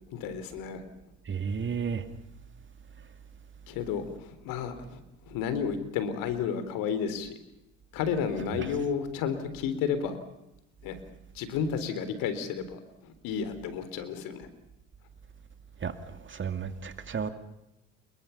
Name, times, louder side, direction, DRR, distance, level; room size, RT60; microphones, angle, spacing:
voice 1, 0.1-0.8 3.7-5.0 5.3-7.4 7.9-10.2 10.8-11.0 11.4-14.5, left 7 dB, 65° left, 11 dB, 3.7 m, -32 dB
voice 2, 1.3-2.0 8.5-8.7 15.8-15.9 16.2-17.3, right 6 dB, 35° right, 8 dB, 2.7 m, -32 dB
29.0 x 22.5 x 5.8 m, 0.89 s
hypercardioid pair, 65°, 36 cm